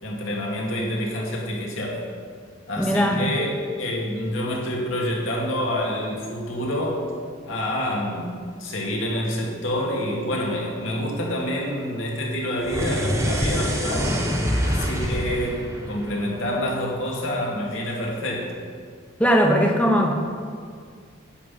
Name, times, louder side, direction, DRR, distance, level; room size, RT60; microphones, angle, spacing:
voice 1, 0.0-2.0 2.7-7.0 7.5-14.2 14.6-18.6, equal, 70° left, -2 dB, 2.4 m, -27 dB
voice 2, 2.8-3.3 19.2-20.1, equal, 5° left, 2 dB, 1.0 m, -19 dB
sound 1, 12.6-17.0, equal, 15° right, 1.3 m, -26 dB
9.8 x 6.0 x 8.6 m, 2.1 s
head